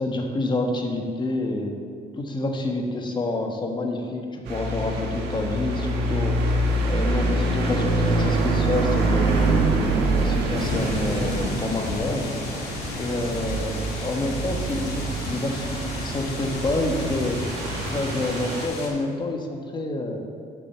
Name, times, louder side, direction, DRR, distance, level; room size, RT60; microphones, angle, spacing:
voice 1, 0.0-1.7 2.2-6.4 6.8-9.7 10.2-12.3 12.9-17.4 17.9-20.2, left 2 dB, 25° left, 2 dB, 1.3 m, -28 dB
sound 1, 4.4-18.7, right 2 dB, 90° right, 1.6 m, -25 dB
sound 2, 10.5-18.9, left 2 dB, 70° left, 2.6 m, -33 dB
7.3 x 6.8 x 7.1 m, 2.2 s
cardioid pair, 110°, 17 cm